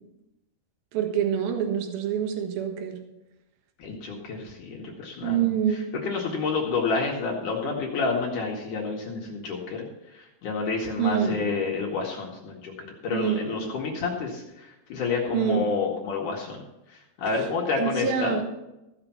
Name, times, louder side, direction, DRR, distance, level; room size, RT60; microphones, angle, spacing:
voice 1, 0.9-2.9 5.2-5.9 11.0-11.4 13.1-13.5 15.3-15.7 17.8-18.4, right 8 dB, 65° right, 4 dB, 3.1 m, -26 dB
voice 2, 3.8-9.8 10.1-12.7 13.0-16.6 16.9-18.3, left 4 dB, 60° left, -1 dB, 2.6 m, -29 dB
15.5 x 6.8 x 5.8 m, 0.93 s
omnidirectional pair, 4.9 m